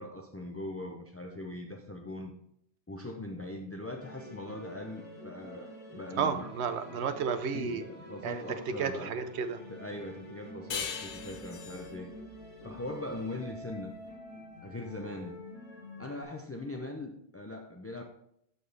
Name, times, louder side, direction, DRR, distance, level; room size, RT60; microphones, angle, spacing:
voice 1, 0.0-2.4 2.9-6.5 7.5-9.1 9.7-12.1 12.6-13.9 14.6-15.4 16.0-18.0, left 1 dB, 20° left, 1 dB, 0.3 m, -40 dB
sound 1, 4.0-16.2, left 1 dB, 15° right, 2.2 m, -48 dB
voice 2, 6.2-7.8 8.2-8.4 8.8-9.6, right 6 dB, 80° right, 10 dB, 1.0 m, -32 dB
sound 2, 10.7-13.9, left 7 dB, 85° left, 1.0 m, -41 dB
12.5 x 4.2 x 3.3 m, 0.73 s
omnidirectional pair, 1.1 m